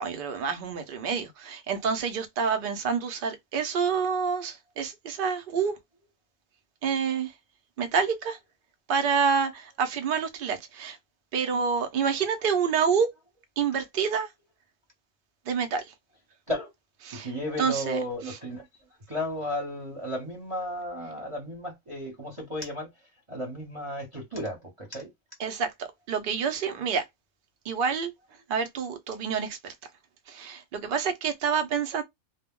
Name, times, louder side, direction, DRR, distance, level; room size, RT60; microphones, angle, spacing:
voice 1, 0.0-5.7 6.8-7.3 7.8-8.4 8.9-11.0 11.3-13.1 13.6-14.3 15.5-15.8 17.0-17.3 17.6-18.0 18.2-18.4 25.4-27.0 27.7-28.1 28.5-29.7 30.3-32.0, right 6 dB, 55° right, 0.7 m, -28 dB
voice 2, 17.2-18.6 19.1-22.9 23.3-25.1, equal, 30° right, 0.9 m, -34 dB
2.2 x 2.1 x 3.5 m
omnidirectional pair, 1.3 m